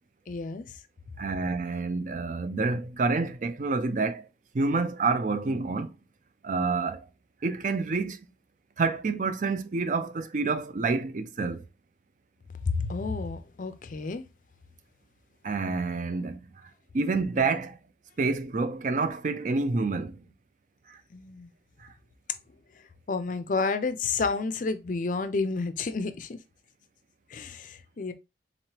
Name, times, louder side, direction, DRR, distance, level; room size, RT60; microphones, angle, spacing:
voice 1, 0.3-0.8 12.7-14.2 21.1-21.5 23.1-26.4 27.3-28.1, left 4 dB, 45° left, 0.4 m, -30 dB
voice 2, 1.2-4.3 4.5-5.9 6.4-7.1 7.4-8.3 8.8-11.6 15.4-17.8 18.2-20.3 20.9-21.0 21.8-21.9, right 3 dB, 40° right, 0.4 m, -28 dB
4.1 x 3.1 x 2.8 m
head